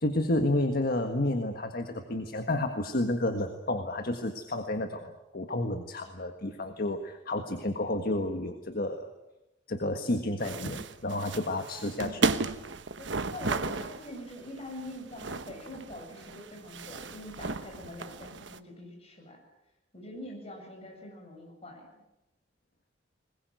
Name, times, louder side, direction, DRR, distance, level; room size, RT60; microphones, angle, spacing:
voice 1, 0.0-9.1 9.7-12.3, left 1 dB, 55° left, 6 dB, 1.6 m, -31 dB
sound 1, 10.4-18.6, right 3 dB, 80° right, 1.2 m, -35 dB
voice 2, 13.0-19.4 19.9-21.9, left 1 dB, 35° left, 1 dB, 8.0 m, -44 dB
21.0 x 21.0 x 9.4 m, 0.96 s
head